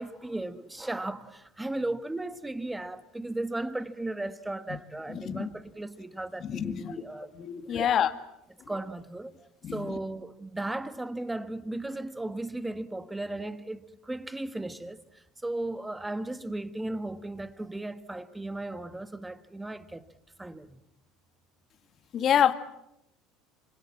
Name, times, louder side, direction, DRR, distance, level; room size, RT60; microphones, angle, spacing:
voice 1, 0.0-7.3 7.7-7.9 8.7-20.1 20.4-20.8, right 2 dB, 10° right, 1.5 m, -36 dB
voice 2, 5.1-5.5 6.4-6.9 7.4-8.1 9.6-10.0 22.1-22.5, left 9 dB, 45° left, 2.0 m, -27 dB
26.5 x 26.0 x 7.5 m
supercardioid pair, 110°, 0 cm